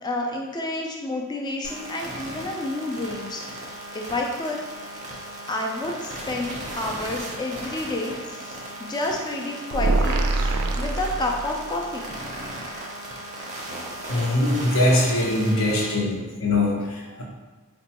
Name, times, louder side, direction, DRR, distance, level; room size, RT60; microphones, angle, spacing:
voice 1, 0.0-3.4 3.9-4.6 5.5-12.1, left 2 dB, 20° left, 0 dB, 0.3 m, -30 dB
sound 1, 1.6-15.9, right 1 dB, 35° right, 0.6 m, -37 dB
sound 2, 9.7-11.8, right 2 dB, 80° right, 0.3 m, -24 dB
voice 2, 14.1-17.2, left 1 dB, 65° left, -2 dB, 0.7 m, -22 dB
4.1 x 2.2 x 2.9 m, 1.3 s
head